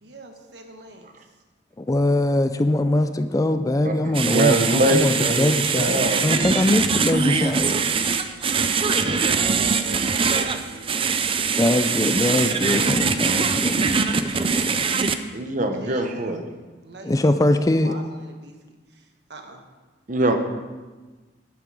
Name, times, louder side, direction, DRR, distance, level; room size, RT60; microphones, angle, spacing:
voice 1, 0.0-1.1 8.6-11.0 11.4-11.6 15.7-16.4 16.8-19.6, right 2 dB, 65° right, 4 dB, 1.5 m, -41 dB
voice 2, 1.8-7.8 11.6-14.9 17.0-17.9, left 1 dB, 20° left, 9 dB, 0.4 m, -22 dB
voice 3, 3.8-6.8 8.5-8.6 15.3-16.4 20.1-20.4, right 2 dB, 45° right, 5 dB, 1.1 m, -24 dB
sound 1, 4.1-15.2, right 5 dB, 30° right, 0.5 m, -23 dB
10.5 x 9.6 x 4.9 m, 1.3 s
head